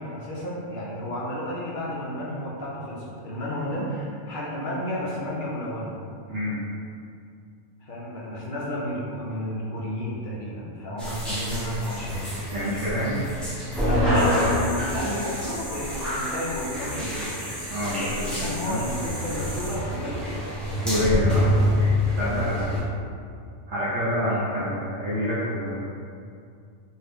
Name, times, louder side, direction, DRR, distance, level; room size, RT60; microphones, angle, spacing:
voice 1, 0.0-5.9 7.8-12.4 13.8-17.3 18.0-20.5 22.2-22.9 24.2-24.4, left 1 dB, 60° left, -6 dB, 0.5 m, -32 dB
voice 2, 6.3-6.6 12.5-13.4 17.7-18.9 20.8-21.5 22.1-22.7 23.7-25.8, left 1 dB, 70° right, -9 dB, 0.9 m, -27 dB
sound 1, 11.0-22.8, left 1 dB, ahead, 0.4 m, -27 dB
sound 2, 14.1-19.8, equal, 35° right, 0.8 m, -38 dB
2.7 x 2.4 x 3.3 m, 2.4 s
omnidirectional pair, 1.3 m